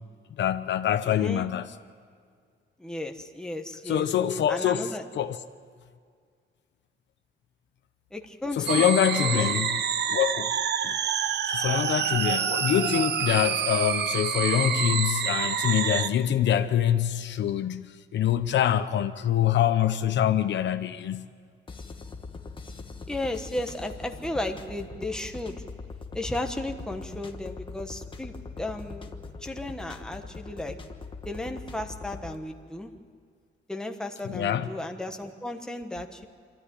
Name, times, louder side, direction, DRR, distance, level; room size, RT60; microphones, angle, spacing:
voice 1, 0.4-1.7 3.9-4.9 5.1-5.4 8.6-9.7 10.1-10.5 10.8-11.0 11.5-21.3 34.2-34.7, left 10 dB, 65° left, 0.8 m, -25 dB
voice 2, 1.0-1.5 2.8-4.1 4.5-5.0 8.1-9.7 23.1-25.6 26.1-29.1 29.4-30.8 31.2-32.9 33.7-36.3, left 1 dB, 5° left, 1.2 m, -34 dB
sound 1, 8.7-16.1, right 8 dB, 60° right, 0.8 m, -27 dB
sound 2, 21.7-32.4, left 4 dB, 25° left, 1.2 m, -41 dB
25.5 x 13.5 x 9.9 m
cardioid pair, 160°, 20 cm